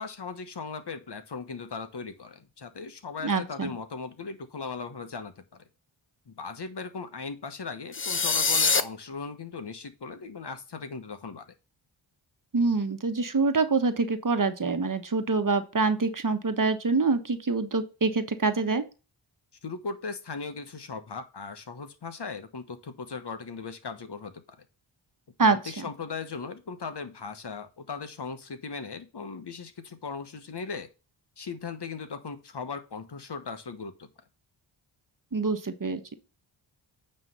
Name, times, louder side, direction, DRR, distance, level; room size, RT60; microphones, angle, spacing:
voice 1, 0.0-5.7 6.3-11.5 19.6-24.4 25.5-30.9 31.4-33.9, left 5 dB, 55° left, 9 dB, 1.3 m, -38 dB
voice 2, 3.2-3.7 12.5-18.8 25.4-25.9 35.3-36.1, right 4 dB, 40° right, 8 dB, 1.2 m, -26 dB
sound 1, 7.9-8.8, left 4 dB, 25° left, 0.8 m, -23 dB
9.0 x 3.3 x 5.6 m, 0.31 s
cardioid pair, 40°, 50 cm